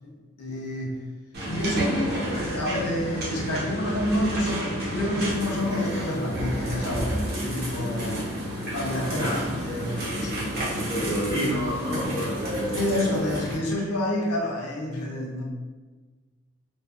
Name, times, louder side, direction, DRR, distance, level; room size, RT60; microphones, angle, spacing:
voice 1, 0.4-1.0 1.5-8.3 8.6-11.1 12.7-15.4, left 1 dB, 85° left, -2 dB, 0.6 m, -29 dB
sound 1, 1.3-13.6, equal, 45° right, 0.7 m, -31 dB
voice 2, 9.1-9.5 10.9-13.2, equal, 15° left, -10 dB, 0.6 m, -29 dB
2.4 x 2.3 x 2.3 m, 1.3 s
head